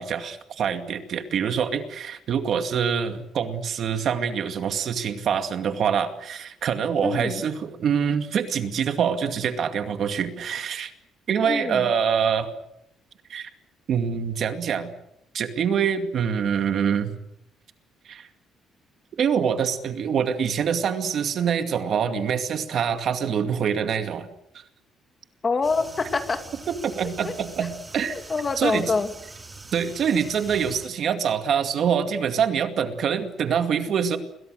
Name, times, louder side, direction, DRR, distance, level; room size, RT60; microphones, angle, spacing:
voice 1, 0.0-10.9 11.3-12.5 13.3-13.5 13.9-14.9 15.3-17.1 18.1-18.3 19.2-24.3 24.5-24.6 26.7-28.2 28.6-28.9 29.7-34.2, right 7 dB, 50° right, 7 dB, 2.3 m, -25 dB
voice 2, 7.0-7.4 11.4-11.9 25.4-26.4 27.2-27.3 28.1-29.1, left 4 dB, 25° left, 7 dB, 2.0 m, -25 dB
sound 1, 25.6-30.9, right 3 dB, 15° right, 2.9 m, -43 dB
29.5 x 23.0 x 6.5 m, 0.78 s
cardioid pair, 160°, 0 cm